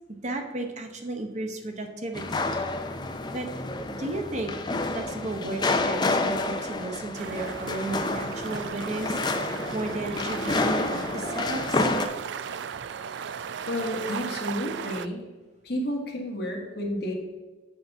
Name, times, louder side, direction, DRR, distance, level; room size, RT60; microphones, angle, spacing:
voice 1, 0.2-2.5 3.3-3.5 4.0-4.5 4.9-9.2 9.7-11.9, right 2 dB, 35° right, 4 dB, 0.8 m, -34 dB
sound 1, 2.1-12.1, left 2 dB, 20° left, 0.5 m, -29 dB
sound 2, 7.1-15.1, right 7 dB, 65° right, 0.3 m, -36 dB
voice 2, 13.7-15.2 15.6-17.1, equal, 55° left, 0 dB, 1.6 m, -31 dB
7.9 x 4.0 x 6.0 m, 1.3 s
head